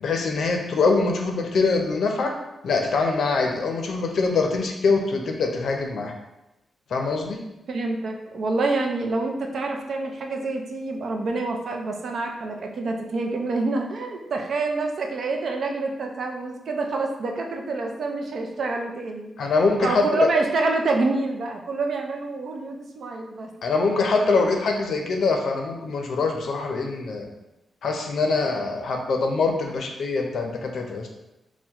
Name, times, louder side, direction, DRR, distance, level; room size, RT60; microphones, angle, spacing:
voice 1, 0.0-2.3 2.6-6.1 6.9-7.4 19.4-20.3 23.6-27.3 27.8-31.1, left 4 dB, 60° left, 2 dB, 0.5 m, -23 dB
voice 2, 7.7-19.3 19.8-23.5 28.6-28.7, right 3 dB, 55° right, 2 dB, 0.5 m, -27 dB
4.4 x 2.1 x 3.5 m, 0.94 s
wide cardioid pair, 165°, 0 cm